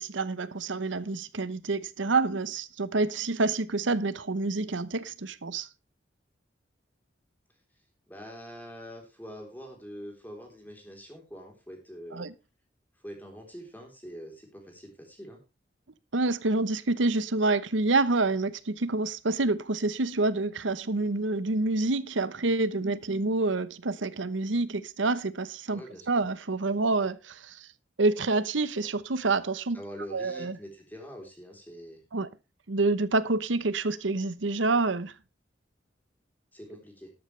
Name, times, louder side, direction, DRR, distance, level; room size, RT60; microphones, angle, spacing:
voice 1, 0.0-5.7 12.1-12.3 16.1-25.8 26.1-27.7 28.0-29.8 30.1-30.6 32.1-32.3 32.7-35.1, right 3 dB, 90° right, 0.9 m, -27 dB
voice 2, 8.1-12.2 13.0-15.4 25.7-26.2 29.7-32.0 36.5-37.1, equal, 10° left, 3.6 m, -44 dB
13.0 x 12.0 x 3.3 m
head